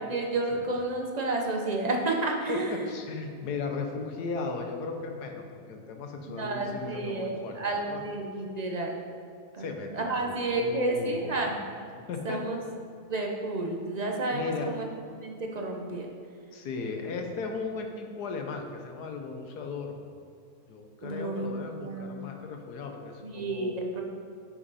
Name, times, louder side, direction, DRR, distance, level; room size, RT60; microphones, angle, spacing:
voice 1, 0.0-2.8 6.3-9.0 9.5-9.7 9.9-11.6 12.2-12.6 13.1-14.8 15.2-16.1 21.0-22.4 23.2-24.0, right 2 dB, 35° right, 1 dB, 0.7 m, -31 dB
voice 2, 2.9-8.0 9.6-11.4 11.9-12.4 14.3-14.7 16.5-20.0 20.7-23.8, left 4 dB, 75° left, 4 dB, 1.5 m, -36 dB
10.0 x 6.1 x 4.1 m, 2.3 s
omnidirectional pair, 1.7 m